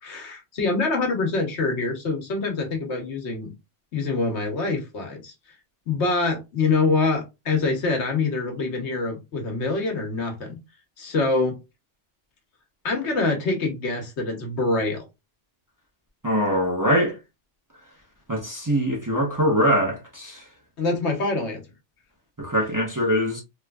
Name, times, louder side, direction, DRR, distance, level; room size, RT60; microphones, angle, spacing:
voice 1, 0.0-3.5 3.9-5.3 5.9-10.6 11.0-11.6 12.8-15.0 20.8-21.6, left 3 dB, 70° left, 1.2 m, -25 dB
voice 2, 16.2-17.2 18.3-20.4 22.4-23.4, equal, 20° right, 0.7 m, -23 dB
3.2 x 3.0 x 2.3 m
omnidirectional pair, 1.2 m